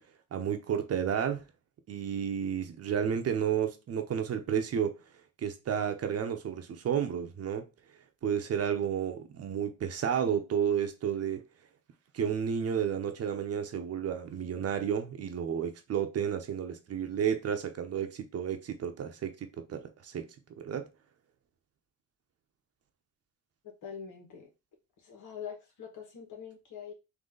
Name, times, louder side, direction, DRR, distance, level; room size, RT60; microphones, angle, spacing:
voice 1, 0.3-1.4 1.9-4.9 5.4-7.7 8.2-11.4 12.1-20.9, right 8 dB, 55° right, 0.8 m, -31 dB
voice 2, 23.8-24.5 25.0-26.9, left 7 dB, 80° left, 1.8 m, -44 dB
3.9 x 2.8 x 3.9 m
cardioid pair, 90°, 30 cm